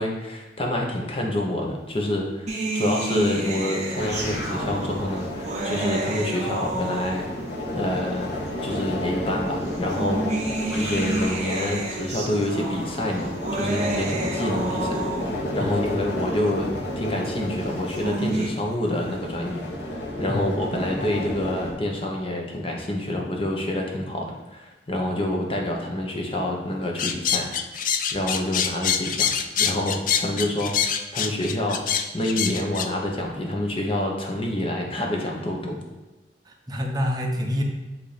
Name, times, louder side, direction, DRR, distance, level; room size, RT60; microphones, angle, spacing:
voice 1, 0.0-7.2 7.7-8.3 8.6-10.2 10.7-15.0 15.5-16.7 17.0-27.5 28.1-29.3 29.6-35.8, left 1 dB, 30° left, 0 dB, 1.0 m, -27 dB
sound 1, 2.5-7.6 8.5-8.6 9.7-15.6 17.7-18.5, right 2 dB, 40° right, 1.1 m, -29 dB
sound 2, 3.9-21.7, left 1 dB, 75° left, 1.4 m, -32 dB
voice 2, 15.6-16.0 20.3-20.5 36.5-37.6, equal, 25° right, 1 dB, 0.8 m, -27 dB
sound 3, 27.0-32.9, left 8 dB, 50° left, 0.4 m, -25 dB
7.9 x 2.9 x 5.0 m, 1.1 s
head